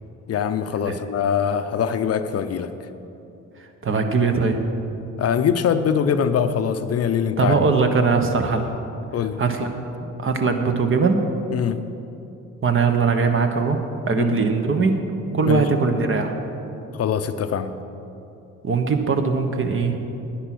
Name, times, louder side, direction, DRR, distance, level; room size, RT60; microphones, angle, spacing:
voice 1, 0.3-2.7 5.2-7.6 9.1-9.4 11.5-11.8 14.2-14.4 15.4-15.6 16.9-17.8, left 7 dB, 55° left, 10 dB, 0.6 m, -23 dB
voice 2, 3.6-4.6 7.4-8.7 9.4-9.7 10.2-11.3 12.6-13.8 14.1-15.0 15.3-16.3 18.6-20.0, right 4 dB, 45° right, 6 dB, 1.2 m, -20 dB
10.0 x 9.8 x 6.1 m, 2.9 s
cardioid pair, 90°, 30 cm